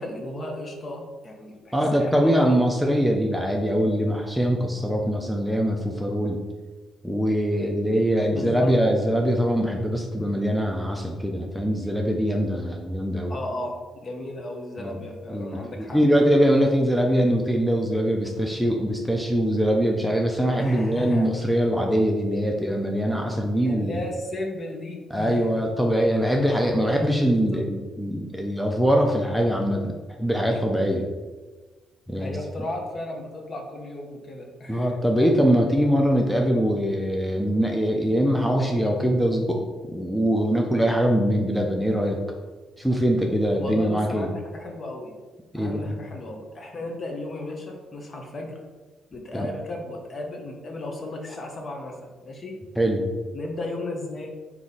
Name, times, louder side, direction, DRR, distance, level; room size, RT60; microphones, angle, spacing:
voice 1, 0.0-2.6 8.3-8.8 13.3-13.7 14.0-16.0 20.6-21.3 23.6-25.7 26.8-27.6 32.2-34.9 43.6-45.1 45.5-48.6 49.1-52.6 53.3-54.3, left 1 dB, 40° left, 2 dB, 0.8 m, -35 dB
voice 2, 1.7-6.4 7.0-13.4 14.8-15.0 15.3-24.0 25.1-29.9 30.2-31.1 32.1-32.4 34.7-39.6 39.9-42.2 42.8-44.3 45.5-46.0 49.3-49.5 52.8-53.1, equal, ahead, 1 dB, 0.5 m, -23 dB
3.6 x 2.9 x 4.1 m, 1.3 s
cardioid pair, 90°, 0 cm